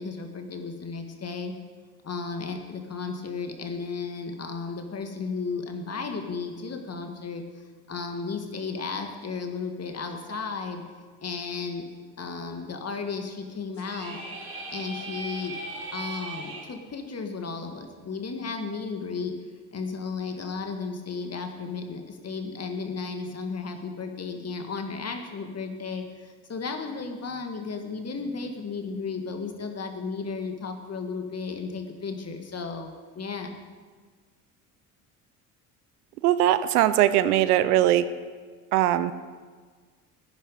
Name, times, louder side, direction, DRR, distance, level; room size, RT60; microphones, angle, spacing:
voice 1, 0.0-1.5 2.0-7.4 7.9-10.8 11.2-11.8 12.2-14.2 14.7-15.6 15.9-19.3 19.7-33.5, left 4 dB, 35° left, 5 dB, 2.1 m, -34 dB
sound 1, 13.7-16.7, right 2 dB, 25° right, 4.9 m, -38 dB
voice 2, 36.2-38.1 38.7-39.1, right 12 dB, 75° right, 14 dB, 0.7 m, -20 dB
15.5 x 10.0 x 5.2 m, 1.5 s
hypercardioid pair, 60°, 46 cm